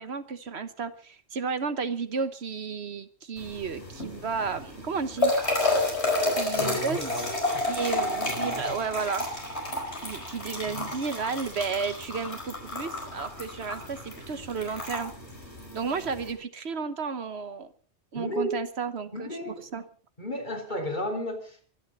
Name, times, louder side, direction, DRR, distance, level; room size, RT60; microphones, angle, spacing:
voice 1, 0.0-5.3 6.3-7.1 7.7-9.3 10.0-15.1 15.7-17.7 18.1-19.9, right 5 dB, 70° right, 11 dB, 1.4 m, -32 dB
sound 1, 3.4-16.3, left 2 dB, 75° left, 5.4 m, -31 dB
voice 2, 6.5-7.7 8.3-8.9 10.7-10.9 18.1-18.6 19.1-19.7 20.2-21.7, left 1 dB, 45° left, 2 dB, 3.8 m, -34 dB
24.0 x 10.0 x 5.3 m, 0.43 s
omnidirectional pair, 1.1 m